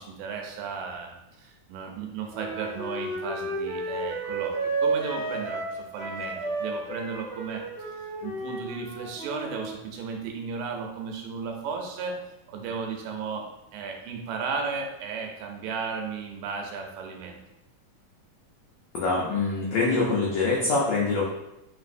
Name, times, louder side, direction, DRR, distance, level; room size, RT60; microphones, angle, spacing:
voice 1, 0.0-12.2 12.5-13.5 13.7-17.4, right 5 dB, 90° right, 2 dB, 2.3 m, -35 dB
Wind instrument woodwind instrument, 2.3-9.7, right 2 dB, 45° right, 0.9 m, -32 dB
voice 2, 18.9-21.2, left 3 dB, 80° left, -4 dB, 1.5 m, -24 dB
4.9 x 3.3 x 2.5 m, 0.89 s
omnidirectional pair, 3.8 m